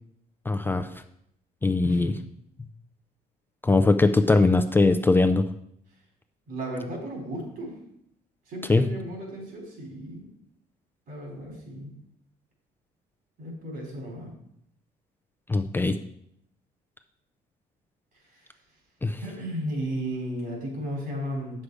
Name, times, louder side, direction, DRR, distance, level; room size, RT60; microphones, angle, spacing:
voice 1, 0.5-0.9 1.6-2.1 3.6-5.4 8.7-8.9 15.5-16.0 19.0-19.2, left 3 dB, 10° left, 6 dB, 0.4 m, -21 dB
voice 2, 1.8-2.2 6.5-7.7 8.5-10.3 11.1-12.0 13.4-14.3 18.3-18.5 19.2-21.6, right 1 dB, 60° right, 0 dB, 4.2 m, -34 dB
8.4 x 6.5 x 4.8 m, 0.72 s
cardioid pair, 110°, 17 cm